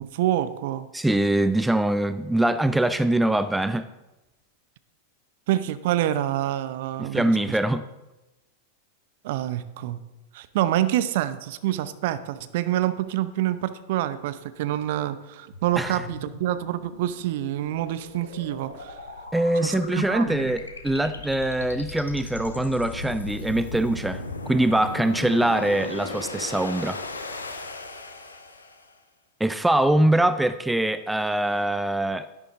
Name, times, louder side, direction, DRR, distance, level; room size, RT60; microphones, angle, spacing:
voice 1, 0.0-0.9 5.5-7.6 9.2-10.0 10.3-19.0 19.6-20.5, right 13 dB, 50° right, 14 dB, 0.7 m, -27 dB
voice 2, 0.9-3.9 7.0-7.9 15.8-16.0 19.3-24.2 24.5-27.0 29.4-32.3, right 1 dB, 5° right, 13 dB, 0.4 m, -23 dB
sound 1, 15.5-28.9, left 2 dB, 80° left, 1.2 m, -37 dB
12.0 x 11.0 x 3.9 m, 1.0 s
figure-of-eight pair, 90°, 0 cm